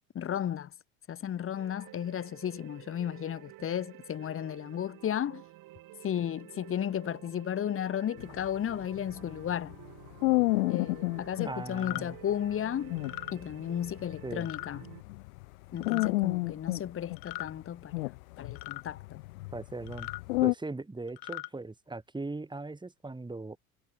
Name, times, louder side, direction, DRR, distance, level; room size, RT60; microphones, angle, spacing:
voice 1, 0.1-0.7 1.1-5.4 6.0-9.8 10.7-12.9 13.3-14.8 15.7-18.1 18.4-19.2, left 10 dB, 30° left, 1.3 m, -34 dB
sound 1, 1.5-15.0, right 17 dB, 50° right, 2.2 m, -51 dB
sound 2, 8.2-11.5 11.9-12.0 12.5-12.6 12.8-15.4 15.8-17.6 17.9-20.5, left 22 dB, 75° left, 0.7 m, -31 dB
voice 2, 11.4-12.2 14.2-14.5 19.5-20.1 20.4-23.6, right 3 dB, 10° right, 3.4 m, -39 dB
sound 3, 11.7-12.0 13.0-13.3 14.4-14.7 15.8-16.1 17.2-17.5 18.5-18.8 19.9-20.2 21.1-21.5, left 21 dB, 55° left, 1.5 m, -39 dB
hypercardioid pair, 80°, 43 cm